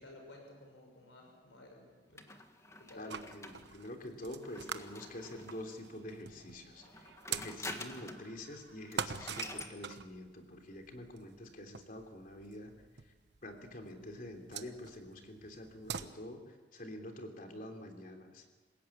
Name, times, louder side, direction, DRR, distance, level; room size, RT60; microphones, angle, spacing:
voice 1, 0.0-2.2 2.8-3.2, left 1 dB, 85° left, 1 dB, 6.2 m, -54 dB
sound 1, 2.2-5.8 6.8-8.3 8.6-8.7 8.9-9.8, left 2 dB, 15° left, 1.6 m, -47 dB
voice 2, 2.9-12.7 13.0-13.1 13.4-18.4, left 1 dB, 50° left, 4 dB, 3.3 m, -47 dB
sound 2, 3.1-16.1, right 6 dB, 65° right, 1.1 m, -45 dB
Laughter, 4.3-9.2, right 4 dB, 80° right, 3.3 m, -64 dB
27.0 x 17.0 x 8.6 m, 1.4 s
head